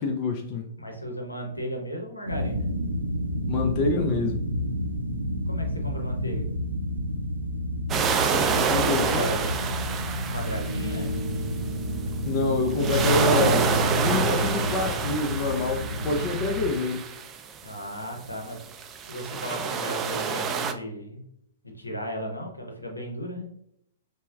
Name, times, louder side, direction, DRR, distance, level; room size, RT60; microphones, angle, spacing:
voice 1, 0.0-0.7 3.5-4.4 8.7-9.3 12.3-13.7 13.9-17.1, left 3 dB, 40° left, 3 dB, 0.5 m, -26 dB
voice 2, 0.8-2.7 5.5-6.5 8.8-9.6 10.3-11.1 17.6-18.6 19.0-21.2 21.6-23.4, equal, 90° left, 2 dB, 0.7 m, -35 dB
sound 1, 2.3-16.7, equal, 85° right, 0.5 m, -29 dB
sound 2, 7.9-11.7 12.7-17.7 18.6-20.7, right 6 dB, 25° right, 0.3 m, -28 dB
5.3 x 2.1 x 2.3 m, 0.73 s
figure-of-eight pair, 110°, 0 cm